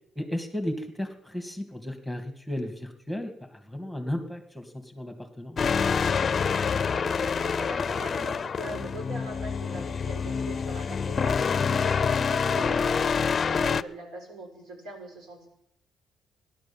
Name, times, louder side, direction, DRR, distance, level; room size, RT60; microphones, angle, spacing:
voice 1, 0.2-5.7, left 1 dB, ahead, 5 dB, 2.5 m, -34 dB
sound 1, 5.6-13.8, left 6 dB, 40° left, 0.5 m, -26 dB
voice 2, 6.9-15.5, right 1 dB, 85° right, 1 dB, 5.7 m, -41 dB
16.5 x 11.5 x 7.3 m, 0.75 s
cardioid pair, 90°, 0 cm